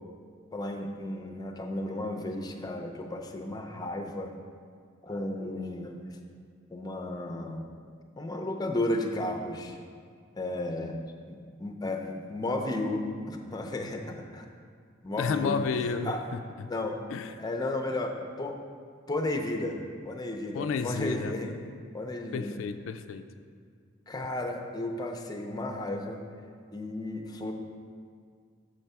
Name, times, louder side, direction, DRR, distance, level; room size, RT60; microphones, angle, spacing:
voice 1, 0.5-4.3 5.0-6.2 6.7-7.7 8.2-9.8 10.4-11.0 11.3-14.5 15.0-15.6 16.0-16.2 16.7-17.0 17.4-18.6 19.1-19.8 20.0-21.5 21.9-22.6 24.1-26.2 26.7-27.5, left 1 dB, 20° left, 4 dB, 0.5 m, -33 dB
voice 2, 15.2-16.7 17.1-17.4 20.5-21.6 22.3-23.2, left 5 dB, 75° left, 8 dB, 0.3 m, -32 dB
6.6 x 4.6 x 5.4 m, 2.1 s
head